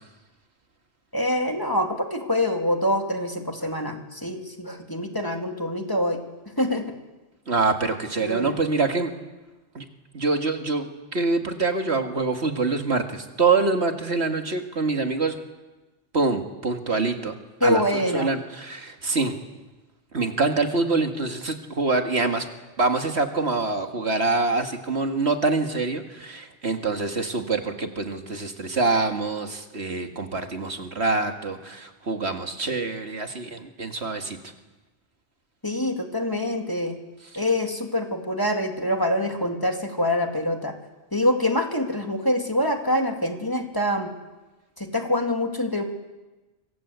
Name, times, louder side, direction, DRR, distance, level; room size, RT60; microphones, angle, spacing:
voice 1, 1.1-6.2 6.6-6.8 8.2-8.6 17.6-18.3 35.6-37.0 37.4-40.7 41.1-44.1 44.8-45.8, left 1 dB, 20° left, 3 dB, 2.5 m, -25 dB
voice 2, 7.5-9.1 9.7-9.9 10.1-15.4 16.1-17.3 17.6-17.8 18.1-19.4 20.1-22.5 22.8-34.4, right 3 dB, 65° right, 5 dB, 2.2 m, -25 dB
26.0 x 24.5 x 8.2 m, 1.1 s
omnidirectional pair, 1.2 m